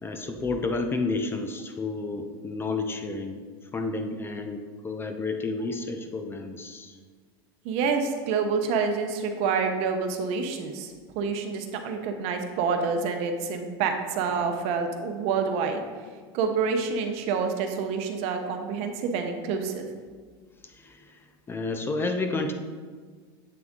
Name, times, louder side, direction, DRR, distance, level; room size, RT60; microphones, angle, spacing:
voice 1, 0.0-3.4 3.7-7.0 20.6-21.2 21.5-22.5, left 3 dB, 20° left, 5 dB, 0.5 m, -31 dB
voice 2, 7.6-15.8 16.3-19.9, right 5 dB, 55° right, 5 dB, 0.7 m, -27 dB
7.7 x 3.5 x 3.7 m, 1.5 s
supercardioid pair, 120°, 13 cm